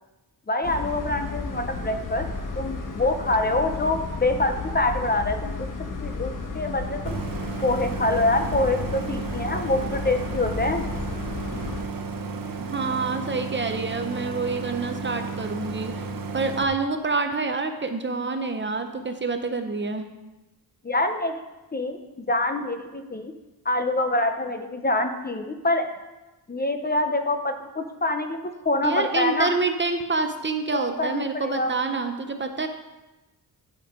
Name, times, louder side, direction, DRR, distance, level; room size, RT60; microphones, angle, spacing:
voice 1, 0.5-2.3 2.6-5.7 6.0-7.1 7.6-10.8 20.8-21.4 21.7-22.0 22.3-23.3 23.7-25.9 26.5-29.5 30.7-31.8, left 2 dB, 25° left, 6 dB, 0.6 m, -25 dB
sound 1, 0.6-11.8, left 3 dB, 55° left, 1.1 m, -33 dB
Idling, 7.1-16.6, right 4 dB, 60° right, 1.0 m, -33 dB
voice 2, 12.6-16.1 16.3-20.1 28.8-32.7, right 3 dB, 30° right, 6 dB, 0.6 m, -27 dB
11.5 x 5.2 x 5.1 m, 1.1 s
wide cardioid pair, 165°, 39 cm